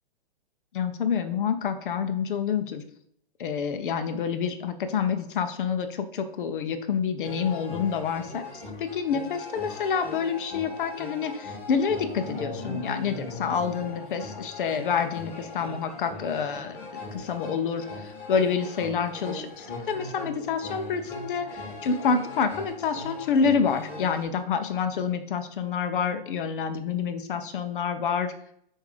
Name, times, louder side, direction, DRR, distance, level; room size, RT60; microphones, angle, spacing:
voice 1, 0.7-2.8 3.4-8.4 8.8-16.8 17.1-21.5 21.8-28.3, left 6 dB, 60° left, 9 dB, 0.7 m, -28 dB
sound 1, 7.2-24.2, left 2 dB, 20° left, 1.2 m, -39 dB
7.0 x 2.7 x 4.9 m, 0.69 s
hypercardioid pair, 145°, 29 cm